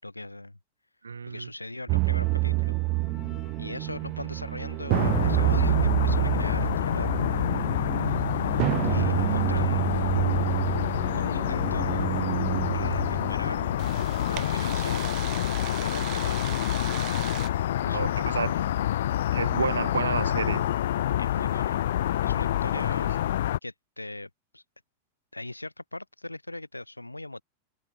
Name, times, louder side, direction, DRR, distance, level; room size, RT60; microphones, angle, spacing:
voice 1, 0.0-0.6 1.2-2.7 3.6-7.5 8.8-9.9 11.1-12.2 12.7-13.7 14.3-15.2 15.7-16.5 17.8-18.4 21.2-21.9 22.2-23.1 23.6-24.6 25.3-27.4, left 2 dB, 85° left, 7.1 m, -39 dB
voice 2, 1.0-1.5 17.8-18.6 19.3-20.6 22.7-22.8, right 5 dB, 75° right, 1.0 m, -30 dB
sound 1, 1.9-17.5, right 26 dB, 40° right, 0.8 m, -29 dB
sound 2, 2.2-17.7, left 11 dB, 30° left, 4.3 m, -53 dB
sound 3, 4.9-23.6, left 12 dB, 60° left, 0.3 m, -27 dB
figure-of-eight pair, 90°, 0 cm